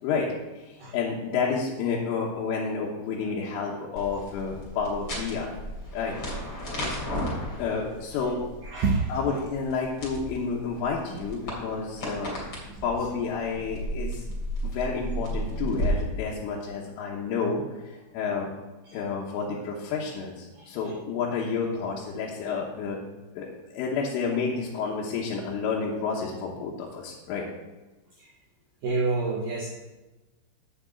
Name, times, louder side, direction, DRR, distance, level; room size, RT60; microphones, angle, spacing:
voice 1, 0.6-5.5 5.9-6.2 7.6-8.4 9.1-12.4 12.8-14.3 14.6-18.5 18.9-23.0 23.4-27.4, left 5 dB, 85° left, -4 dB, 3.7 m, -30 dB
sound 1, 4.0-15.9, equal, 30° left, 2.8 m, -35 dB
voice 2, 8.7-9.2 12.7-12.8 18.9-19.0 20.6-20.7 28.8-29.7, right 4 dB, 85° right, -3 dB, 1.9 m, -27 dB
7.8 x 6.2 x 7.8 m, 1.1 s
omnidirectional pair, 5.6 m